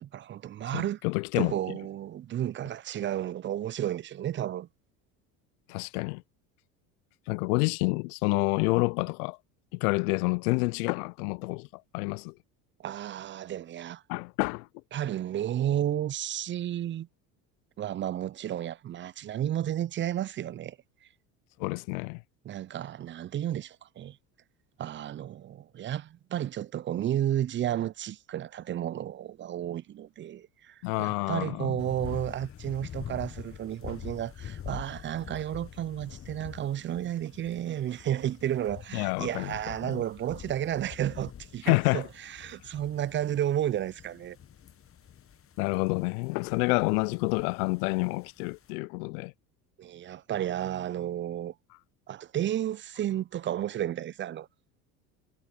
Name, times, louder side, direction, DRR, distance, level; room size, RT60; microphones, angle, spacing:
voice 1, 0.0-1.0 1.4-4.7 12.8-14.0 14.9-17.1 17.8-20.8 22.4-24.2 24.8-44.4 49.8-51.5 52.1-54.5, right 11 dB, 25° right, 0.5 m, -32 dB
voice 2, 0.7-1.5 5.7-6.2 7.3-9.4 9.7-12.3 14.1-14.7 21.6-22.2 30.8-31.8 38.9-39.5 39.8-40.0 41.6-42.0 45.6-49.3, left 28 dB, 65° left, 0.6 m, -28 dB
sound 1, 31.8-48.7, left 9 dB, 25° left, 1.1 m, -46 dB
hypercardioid pair, 75°, 48 cm